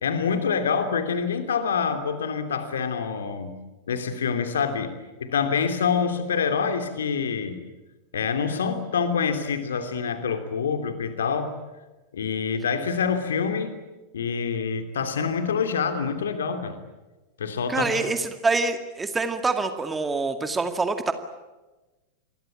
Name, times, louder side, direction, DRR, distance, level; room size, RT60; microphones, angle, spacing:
voice 1, 0.0-3.5 3.9-7.6 8.1-11.5 12.1-13.8 14.1-16.8 17.4-18.0, left 6 dB, 65° left, 8 dB, 3.0 m, -26 dB
voice 2, 17.7-21.1, right 3 dB, 15° right, 8 dB, 2.1 m, -25 dB
28.0 x 22.0 x 8.8 m, 1.1 s
figure-of-eight pair, 90°, 0 cm